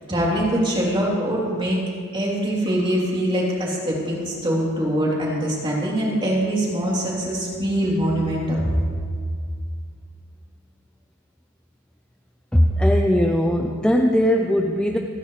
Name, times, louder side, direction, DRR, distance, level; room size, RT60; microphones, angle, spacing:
voice 1, 0.1-1.8 2.1-8.8, right 1 dB, 25° right, -4 dB, 3.5 m, -23 dB
voice 2, 12.5-15.0, equal, 5° left, 1 dB, 0.7 m, -19 dB
30.0 x 10.0 x 3.3 m, 2.1 s
head